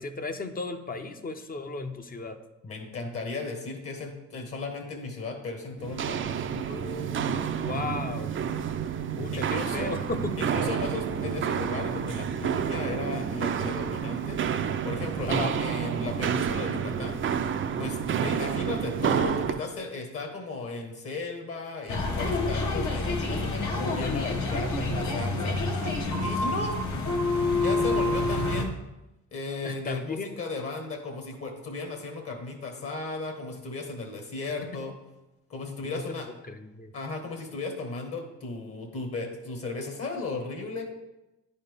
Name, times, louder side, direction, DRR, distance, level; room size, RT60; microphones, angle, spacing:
voice 1, 0.0-2.4 6.7-8.3 9.2-10.3 15.3-15.6 29.6-30.3 35.8-36.2 36.5-36.9, left 3 dB, 30° left, 7 dB, 0.7 m, -35 dB
voice 2, 2.6-6.5 9.3-10.0 10.4-14.4 14.8-17.2 17.8-25.6 26.2-26.8 27.6-28.7 29.3-34.9 35.5-36.3 36.9-40.9, left 3 dB, 50° left, 4 dB, 1.4 m, -35 dB
Walk footsteps, 5.8-19.6, right 7 dB, 40° right, 0.5 m, -29 dB
sound 1, 21.9-28.6, left 2 dB, 70° left, 1.3 m, -27 dB
10.0 x 4.3 x 3.4 m, 0.96 s
cardioid pair, 90°, 30 cm